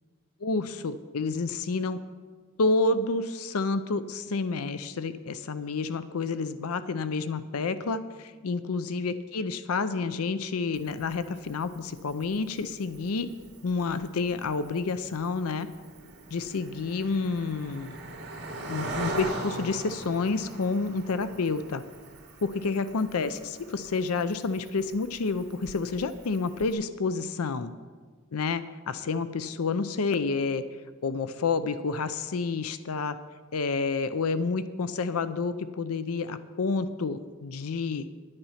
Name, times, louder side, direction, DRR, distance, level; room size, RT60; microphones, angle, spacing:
voice 1, 0.4-2.0 2.6-13.3 13.6-15.7 16.3-17.9 18.7-21.8 22.4-27.7 28.3-30.6 31.0-33.2 33.5-38.1, left 4 dB, 85° left, 13 dB, 0.5 m, -29 dB
Cricket, 10.7-26.7, right 1 dB, 50° right, 2.3 m, -42 dB
10.5 x 9.8 x 5.7 m, 1.5 s
head